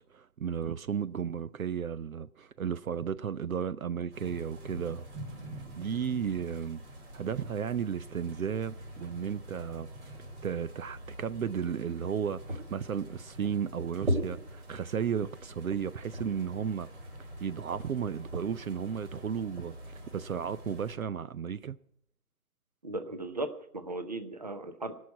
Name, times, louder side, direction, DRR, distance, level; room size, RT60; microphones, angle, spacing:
voice 1, 0.1-5.1 5.7-6.8 7.1-9.9 10.4-16.9 17.4-21.8, right 7 dB, 65° right, 0.6 m, -34 dB
sound 1, 4.1-20.9, equal, 45° right, 4.6 m, -41 dB
voice 2, 22.8-24.9, right 2 dB, 30° right, 0.7 m, -37 dB
18.0 x 6.4 x 8.3 m
hypercardioid pair, 170°, 45 cm